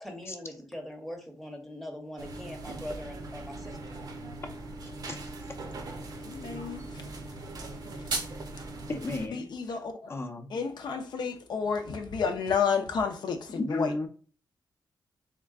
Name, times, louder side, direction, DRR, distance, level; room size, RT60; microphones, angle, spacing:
voice 1, 0.0-4.0, left 1 dB, ahead, 0.8 m, -42 dB
sound 1, 2.2-9.3, right 2 dB, 60° right, 0.6 m, -41 dB
voice 2, 6.0-7.0 8.0-8.1 9.3-10.1 10.5-13.9, left 6 dB, 75° left, 0.6 m, -31 dB
sound 2, 7.6-8.6, right 3 dB, 85° right, 1.1 m, -35 dB
voice 3, 8.9-9.5 10.1-10.6 13.5-14.1, left 2 dB, 35° left, 0.6 m, -33 dB
3.7 x 3.3 x 2.3 m
wide cardioid pair, 140°, 7 cm